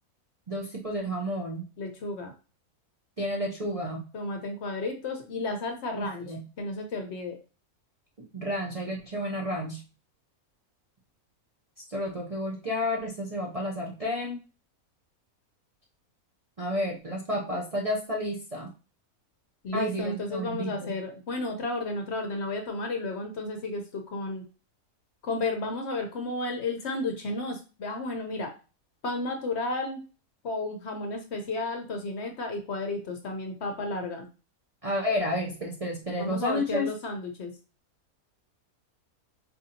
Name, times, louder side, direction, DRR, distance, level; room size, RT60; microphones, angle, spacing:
voice 1, 0.5-1.7 3.2-4.1 6.0-6.4 8.3-9.8 11.8-14.4 16.6-18.7 19.7-20.9 34.8-36.9, left 1 dB, 40° right, -3 dB, 0.5 m, -31 dB
voice 2, 1.8-2.3 4.1-7.4 19.6-24.5 25.2-28.5 29.0-30.0 30.4-34.3 36.2-37.5, left 2 dB, 60° left, 4 dB, 0.8 m, -32 dB
4.3 x 2.6 x 2.7 m, 0.33 s
omnidirectional pair, 1.6 m